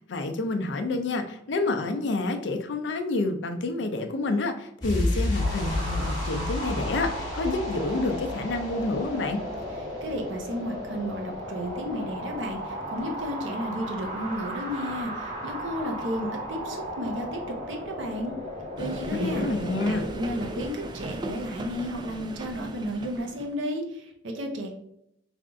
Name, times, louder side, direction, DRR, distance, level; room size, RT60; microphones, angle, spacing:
voice 1, 0.1-9.4 19.1-20.0, left 2 dB, 70° left, 6 dB, 0.5 m, -28 dB
sound 1, 4.8-11.3 11.6-11.7, left 2 dB, 20° left, 1.1 m, -32 dB
sound 2, 5.4-20.6, equal, 40° right, 1.1 m, -36 dB
voice 2, 10.0-17.4 17.7-18.3 18.8-19.4 19.8-24.7, equal, 80° right, 2 dB, 0.7 m, -33 dB
sound 3, 18.8-23.6, right 1 dB, 25° right, 0.3 m, -38 dB
3.5 x 2.4 x 3.6 m, 0.77 s
head